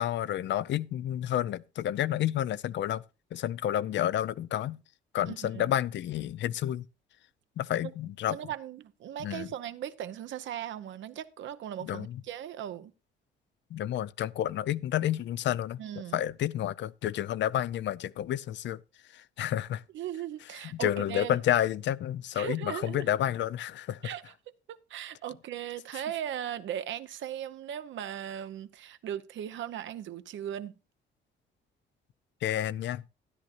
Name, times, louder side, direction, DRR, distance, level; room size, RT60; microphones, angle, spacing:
voice 1, 0.0-3.0 3.3-4.8 5.1-6.8 7.6-8.4 9.2-9.5 11.8-12.2 13.7-15.8 16.1-18.8 19.1-19.8 20.8-24.1 32.4-33.0, left 11 dB, 65° left, 0.5 m, -30 dB
voice 2, 5.3-5.7 7.8-7.9 8.3-12.9 15.8-16.2 19.9-21.4 22.3-23.1 24.0-24.3 24.7-30.7, right 10 dB, 75° right, 0.8 m, -38 dB
13.0 x 10.5 x 2.5 m
cardioid pair, 90°, 20 cm